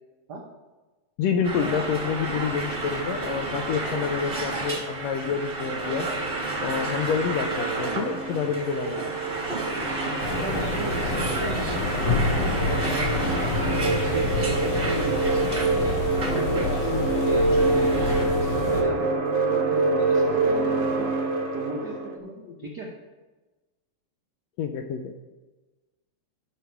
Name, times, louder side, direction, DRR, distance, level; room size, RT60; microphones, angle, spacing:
voice 1, 1.2-6.1 6.6-9.0 22.2-22.7 24.6-25.2, left 6 dB, 80° left, 6 dB, 1.5 m, -28 dB
sound 1, 1.4-18.3, right 2 dB, 40° right, 0.7 m, -31 dB
sound 2, 5.6-22.2, right 3 dB, 65° right, 1.1 m, -27 dB
voice 2, 10.0-16.0 16.3-19.1 19.6-21.2 21.5-22.3 22.6-22.9, right 2 dB, 85° right, -1 dB, 0.9 m, -36 dB
sound 3, 10.2-18.8, left 3 dB, 65° left, 2.2 m, -28 dB
13.5 x 6.5 x 4.6 m, 1.2 s
omnidirectional pair, 3.6 m